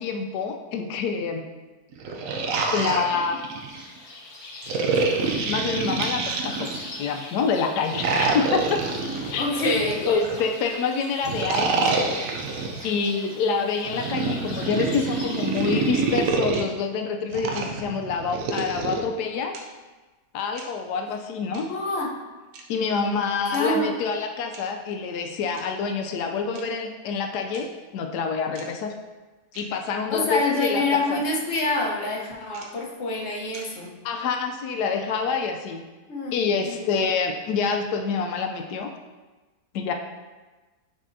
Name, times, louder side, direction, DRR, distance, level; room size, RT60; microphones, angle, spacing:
voice 1, 0.0-1.4 2.7-3.4 5.5-6.7 7.0-8.8 9.3-9.8 10.0-12.0 12.8-19.5 20.3-21.7 22.7-27.7 27.9-29.0 29.5-31.2 34.0-35.8 36.3-38.9 39.7-39.9, left 5 dB, 90° left, 4 dB, 1.2 m, -27 dB
sound 1, 1.9-3.9 4.7-7.0 7.9-10.4 11.2-12.9 13.8-16.6 17.3-19.0, right 3 dB, 65° right, 1.0 m, -27 dB
sound 2, 3.1-16.3, left 2 dB, 70° left, 1.3 m, -41 dB
voice 2, 9.4-10.1 21.6-22.1 23.5-23.9 30.1-33.9 36.1-36.3 36.6-36.9, left 2 dB, 50° left, -2 dB, 1.2 m, -26 dB
sound 3, 15.5-15.7 16.5-16.7 17.5-17.7 18.5-18.7 19.5-19.6 20.5-20.7 21.5-21.7 22.5-22.6 23.5-23.6 24.5-24.7 25.5-25.6 26.5-26.6 27.5-27.6 28.5-28.7 29.5-29.7 30.5-30.7 31.5-31.7 32.5-32.7 33.5-33.6, right 4 dB, 80° right, 1.4 m, -43 dB
8.8 x 4.2 x 2.6 m, 1.2 s
omnidirectional pair, 1.7 m